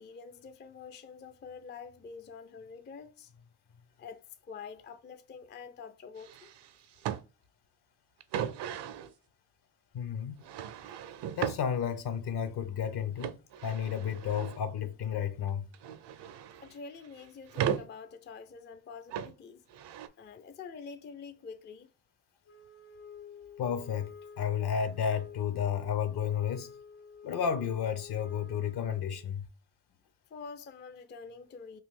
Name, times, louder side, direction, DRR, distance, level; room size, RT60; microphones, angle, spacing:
voice 1, 0.0-3.5 3.7-6.5 16.6-19.6 20.2-21.9 30.3-31.8, left 5 dB, 25° left, 0.4 m, -47 dB
sound 1, 6.2-7.2 8.2-9.1 10.4-11.6 13.2-14.6 15.5-16.7 17.0-17.9 19.1-19.3 19.7-20.1, right 9 dB, 60° right, 0.6 m, -36 dB
voice 2, 9.9-10.4 11.4-13.4 13.6-15.7 23.6-24.1 24.4-26.7 27.2-29.5, left 8 dB, 55° left, 0.8 m, -32 dB
Wind instrument woodwind instrument, 22.5-29.3, left 7 dB, 75° left, 1.1 m, -50 dB
3.0 x 2.5 x 3.6 m
supercardioid pair, 50°, 48 cm